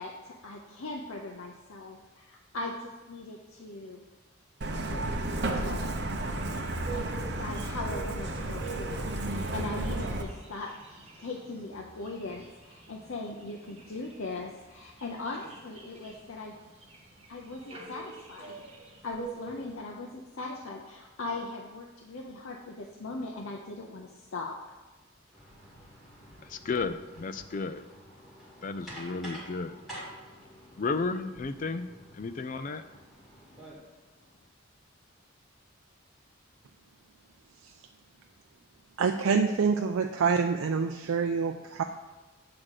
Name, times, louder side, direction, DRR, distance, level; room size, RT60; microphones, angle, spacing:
voice 1, 0.0-4.0 4.9-5.0 5.4-5.9 6.9-10.7 11.2-16.5 17.3-18.6 19.0-24.6, left 2 dB, 80° left, 0 dB, 0.7 m, -39 dB
Truck, 4.6-10.2, right 1 dB, 55° right, 0.8 m, -32 dB
sound 1, 6.9-19.7, right 4 dB, 30° right, 1.0 m, -46 dB
sound 2, 25.3-33.7, equal, ahead, 2.1 m, -49 dB
voice 2, 26.4-27.8 28.6-29.8 30.8-31.9 32.1-32.8, left 4 dB, 40° left, 11 dB, 0.3 m, -33 dB
voice 3, 39.0-41.8, right 5 dB, 85° right, 5 dB, 0.4 m, -26 dB
7.8 x 3.7 x 6.4 m, 1.1 s
head